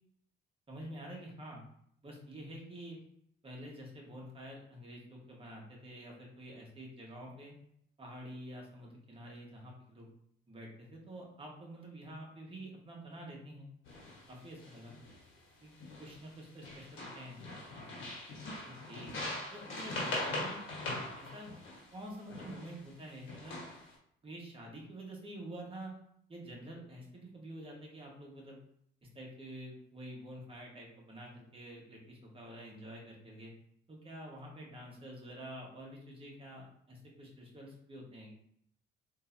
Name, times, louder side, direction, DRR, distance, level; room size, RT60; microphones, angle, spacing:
voice 1, 0.7-1.6 2.0-3.0 3.4-7.5 8.0-10.1 10.5-13.7 14.3-14.9 15.6-15.7 16.0-17.4 18.6-19.2 19.5-20.6 20.9-21.5 21.9-23.6 24.2-25.9 26.3-28.6 29.1-33.5 33.9-38.3, right 1 dB, 25° right, -2 dB, 1.2 m, -48 dB
sound 1, 13.9-14.2 14.6-15.2 15.8-16.3 16.6-22.8 23.3-23.9, left 2 dB, 85° left, 1.2 m, -41 dB
3.7 x 2.8 x 2.6 m, 0.70 s
cardioid pair, 90°, 20 cm